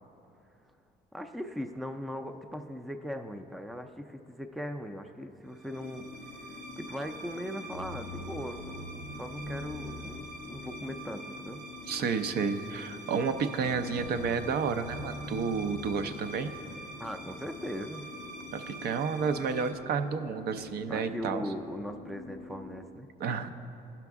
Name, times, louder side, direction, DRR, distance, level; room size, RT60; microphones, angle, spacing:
voice 1, 1.1-6.1 6.3-8.9 9.2-11.6 17.0-18.1 20.9-23.1, equal, ahead, 7 dB, 0.4 m, -39 dB
sound 1, 5.6-19.7, right 1 dB, 90° right, 1.0 m, -44 dB
sound 2, 5.7-22.9, left 5 dB, 70° left, 0.5 m, -48 dB
voice 2, 11.9-16.5 18.5-21.4 23.2-23.5, right 5 dB, 65° right, 8 dB, 0.6 m, -31 dB
16.0 x 5.9 x 3.6 m, 2.8 s
cardioid pair, 110°, 17 cm